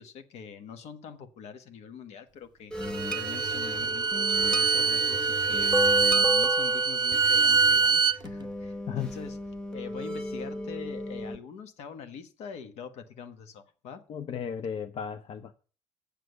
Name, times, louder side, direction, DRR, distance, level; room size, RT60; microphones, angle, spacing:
voice 1, 0.0-2.7 3.1-9.4 9.7-14.0, left 7 dB, 70° left, 1.3 m, -44 dB
sound 1, 2.7-11.4, left 1 dB, 5° left, 1.5 m, -34 dB
Bowed string instrument, 2.8-8.2, right 5 dB, 40° right, 0.4 m, -24 dB
voice 2, 14.1-15.5, left 7 dB, 55° left, 0.7 m, -34 dB
7.8 x 6.7 x 6.6 m
supercardioid pair, 65°, 11 cm